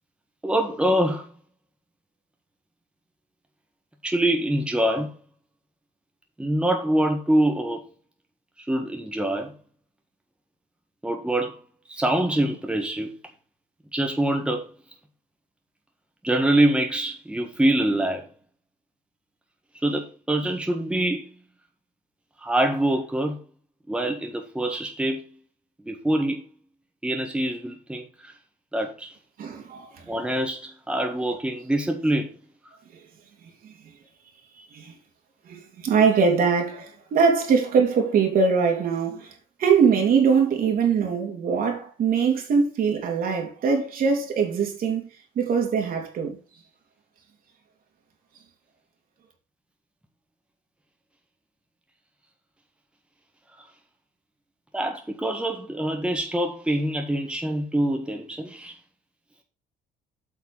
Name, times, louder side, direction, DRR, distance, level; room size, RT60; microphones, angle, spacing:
voice 1, 0.4-1.3 4.0-5.1 6.4-7.8 8.6-9.5 11.0-11.6 11.9-13.2 13.9-14.7 16.2-18.3 19.8-21.4 22.4-23.4 23.9-25.4 25.9-26.5 27.0-28.3 28.7-29.1 30.1-32.3 53.6-53.7 54.7-58.8, right 1 dB, 5° right, 1.6 m, -25 dB
voice 2, 29.4-30.1 32.9-33.0 34.6-35.0 35.5-39.3 39.6-45.1 45.4-46.4, right 6 dB, 60° right, 3.3 m, -22 dB
8.4 x 5.9 x 5.5 m
cardioid pair, 110°, 17 cm